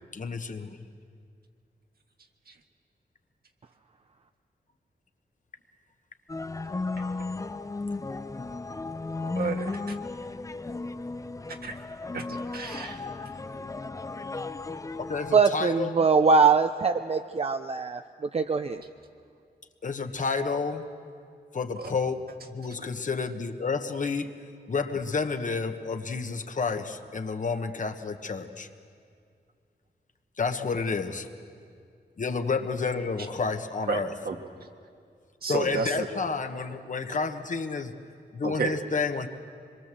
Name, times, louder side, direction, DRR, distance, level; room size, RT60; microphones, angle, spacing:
voice 1, 0.1-0.8 15.1-16.1 19.8-20.8 21.5-22.2 22.5-24.3 24.7-28.7 30.4-31.3 32.2-34.1 35.4-37.9 38.3-39.3, left 4 dB, 50° left, 7 dB, 1.3 m, -30 dB
sound 1, 6.3-15.4, left 3 dB, 20° left, 0.5 m, -35 dB
voice 2, 9.2-10.0 11.5-11.8 12.1-12.2 12.5-13.0 18.7-18.8 21.8-21.9 33.9-34.4 35.4-36.1 38.4-38.7, right 5 dB, 65° right, 4 dB, 1.8 m, -32 dB
voice 3, 15.3-18.0 18.3-18.8, right 5 dB, 35° right, 7 dB, 0.6 m, -22 dB
25.5 x 22.5 x 7.6 m, 2.3 s
wide cardioid pair, 110°, 17 cm